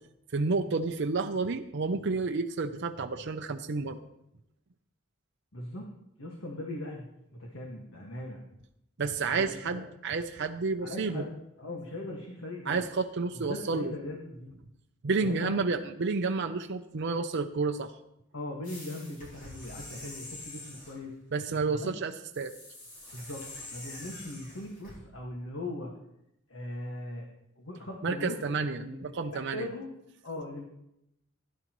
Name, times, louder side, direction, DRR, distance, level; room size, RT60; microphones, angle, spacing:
voice 1, 0.3-4.1 9.0-11.2 12.7-13.9 15.0-17.9 21.3-22.5 28.0-29.7, right 4 dB, 60° right, 5 dB, 0.6 m, -30 dB
voice 2, 5.5-5.9 6.2-7.1 7.4-8.4 9.2-9.9 10.8-11.3 11.6-12.8 13.3-14.5 15.2-15.8 18.3-21.2 21.7-21.9 23.1-23.5 23.7-25.9 26.5-27.3 27.6-28.4 28.8-29.9 30.2-30.6, left 1 dB, 70° left, 0 dB, 1.7 m, -39 dB
sound 1, 18.6-21.1 22.3-25.0, left 1 dB, 45° left, 5.7 m, -46 dB
16.0 x 11.0 x 3.1 m, 0.82 s
head